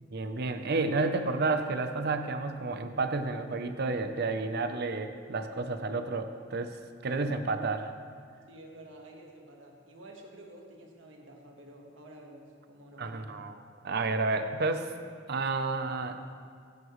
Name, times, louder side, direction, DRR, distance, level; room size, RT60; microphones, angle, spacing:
voice 1, 0.1-6.8 7.0-7.9 13.0-13.6 13.8-14.9 15.3-16.2, right 3 dB, 55° right, 8 dB, 0.7 m, -31 dB
voice 2, 8.5-13.3, right 1 dB, 75° right, 1 dB, 1.5 m, -50 dB
16.0 x 9.8 x 3.2 m, 2.1 s
head